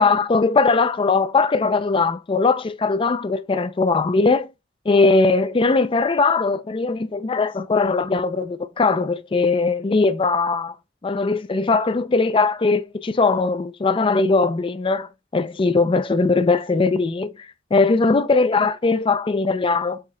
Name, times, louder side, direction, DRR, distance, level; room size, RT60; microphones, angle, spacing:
voice 1, 0.0-4.5 4.9-10.7 11.0-17.3 17.7-20.0, left 3 dB, 25° left, 0.4 m, -20 dB
5.6 x 3.6 x 2.2 m
head